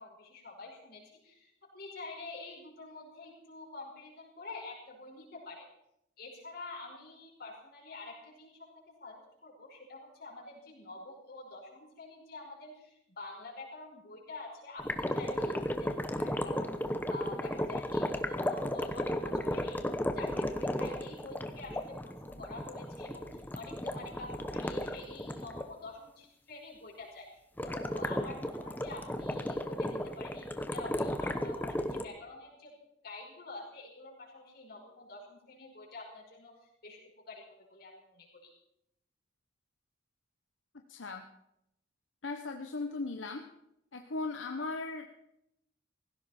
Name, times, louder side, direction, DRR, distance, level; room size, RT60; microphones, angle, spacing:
voice 1, 0.0-5.7 6.2-8.7 9.0-16.8 17.1-19.8 20.1-27.3 27.6-32.7 33.0-37.0 37.3-38.5, left 3 dB, 55° left, -2 dB, 5.4 m, -47 dB
sound 1, 14.8-25.7 27.6-32.0, left 1 dB, 10° left, 0.9 m, -34 dB
voice 2, 40.9-41.3 42.2-43.5 43.9-45.1, left 3 dB, 85° left, 5 dB, 1.0 m, -37 dB
18.0 x 16.0 x 4.4 m, 0.80 s
head